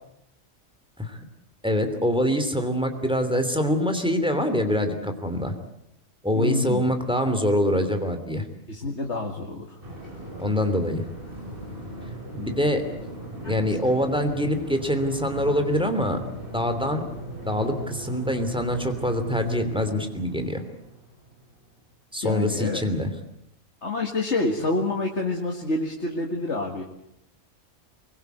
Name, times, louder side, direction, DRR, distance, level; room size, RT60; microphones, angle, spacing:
voice 1, 1.6-5.5 6.2-8.4 10.4-11.0 12.3-12.8 13.4-16.2 16.5-17.0 17.5-20.6 22.1-23.1, equal, 5° right, 6 dB, 2.9 m, -24 dB
voice 2, 6.3-6.8 8.7-9.8 13.4-13.5 22.2-22.8 23.8-26.8, left 2 dB, 60° left, 1 dB, 2.4 m, -27 dB
sound 1, 9.8-21.7, right 1 dB, 40° right, 6.6 m, -38 dB
24.0 x 22.0 x 8.1 m, 0.77 s
omnidirectional pair, 1.4 m